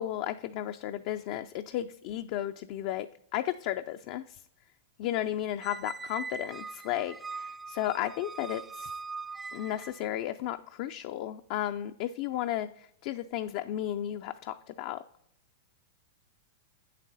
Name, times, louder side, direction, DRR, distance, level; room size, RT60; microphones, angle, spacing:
voice 1, 0.0-3.1 3.3-4.4 5.0-8.9 9.5-15.0, left 12 dB, 55° left, 8 dB, 0.4 m, -34 dB
Squeak, 5.6-10.1, right 4 dB, 15° right, 0.3 m, -41 dB
8.3 x 7.3 x 4.0 m, 0.71 s
hypercardioid pair, 120°, 0 cm